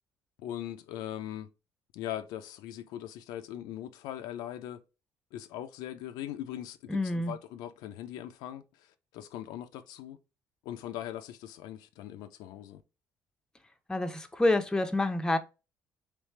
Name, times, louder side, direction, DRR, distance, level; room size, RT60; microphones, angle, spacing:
voice 1, 0.4-1.5 1.9-4.8 5.3-10.2 10.6-12.8, left 11 dB, 85° left, 0.4 m, -40 dB
voice 2, 6.9-7.3 13.9-15.4, left 2 dB, 10° left, 0.6 m, -27 dB
3.2 x 3.2 x 3.1 m
cardioid pair, 90°, 7 cm